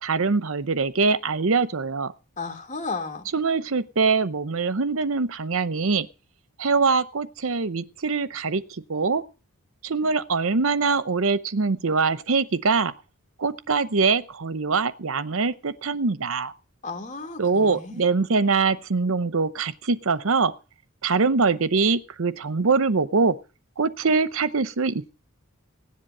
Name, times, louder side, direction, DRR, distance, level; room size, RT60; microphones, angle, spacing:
voice 1, 0.0-2.1 3.3-6.1 6.6-9.2 9.8-12.9 13.4-16.5 17.4-20.5 21.0-23.4 23.8-25.1, right 4 dB, 65° right, 0.8 m, -23 dB
voice 2, 2.4-3.3 16.8-18.1, left 3 dB, 35° left, 2.6 m, -34 dB
16.5 x 10.5 x 5.5 m
head